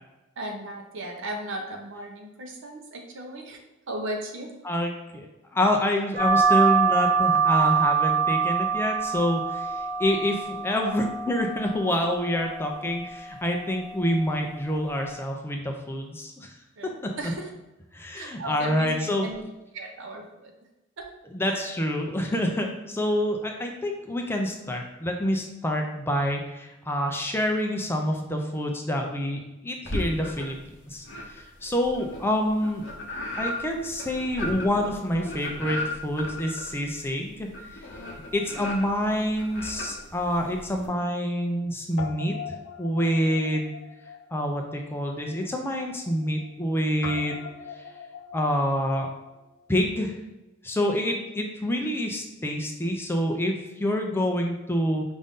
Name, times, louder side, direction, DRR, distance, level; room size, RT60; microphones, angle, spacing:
voice 1, 0.4-3.6 3.9-4.5 16.8-17.5 18.1-19.4 19.7-20.5 21.0-21.1 21.4-21.7, right 1 dB, 65° right, 2 dB, 0.7 m, -36 dB
voice 2, 4.6-5.3 5.5-9.7 10.0-16.5 17.9-19.3 21.3-30.6 30.9-32.8 33.4-37.8 38.3-43.7 44.3-47.5 48.3-49.1 49.7-50.1 50.6-55.0, equal, 10° left, 2 dB, 0.4 m, -27 dB
sound 1, 6.2-15.2, right 6 dB, 35° right, 1.0 m, -26 dB
sound 2, 29.8-30.7 31.0-40.9, left 1 dB, 60° left, 0.8 m, -36 dB
Guitar, 38.3-40.7 41.0-41.1 42.0-49.8, left 6 dB, 80° left, 0.5 m, -43 dB
5.2 x 2.6 x 3.6 m, 1.0 s
head